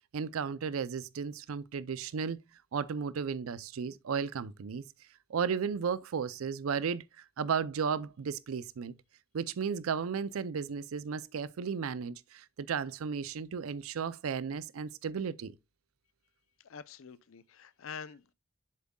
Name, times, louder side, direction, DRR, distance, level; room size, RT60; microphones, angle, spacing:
voice 1, 0.1-2.4 2.7-4.8 5.3-8.9 9.3-15.5, right 6 dB, 85° right, 0.4 m, -34 dB
voice 2, 16.6-18.3, left 6 dB, 75° left, 0.5 m, -46 dB
7.5 x 7.2 x 2.2 m
head